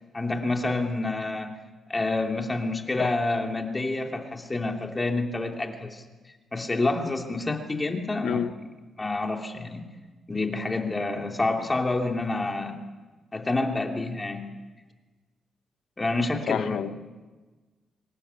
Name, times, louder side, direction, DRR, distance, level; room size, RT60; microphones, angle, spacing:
voice 1, 0.1-1.6 1.9-6.0 6.5-8.5 9.0-9.8 10.3-12.8 13.3-14.5 16.0-16.9, left 2 dB, 20° left, 3 dB, 2.9 m, -28 dB
voice 2, 16.5-16.9, left 9 dB, 80° left, 12 dB, 0.9 m, -28 dB
24.5 x 19.5 x 9.7 m, 1.3 s
cardioid pair, 120°, 0 cm